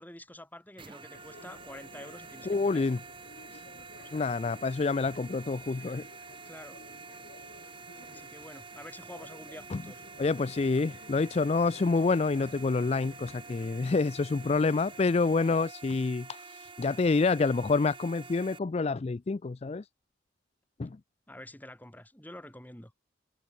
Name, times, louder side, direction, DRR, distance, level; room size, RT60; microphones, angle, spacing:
voice 1, 0.0-3.0 4.0-4.3 6.4-6.8 8.1-10.1 14.7-14.8 21.3-22.9, left 1 dB, 10° left, 2.6 m, -48 dB
sound 1, 0.8-18.6, right 4 dB, 25° right, 1.5 m, -48 dB
sound 2, 1.1-15.3, left 2 dB, 55° left, 3.8 m, -54 dB
voice 2, 2.5-3.0 3.5-3.6 4.1-6.0 9.7-9.8 10.2-19.8 20.8-21.0, left 3 dB, 30° left, 0.4 m, -28 dB
head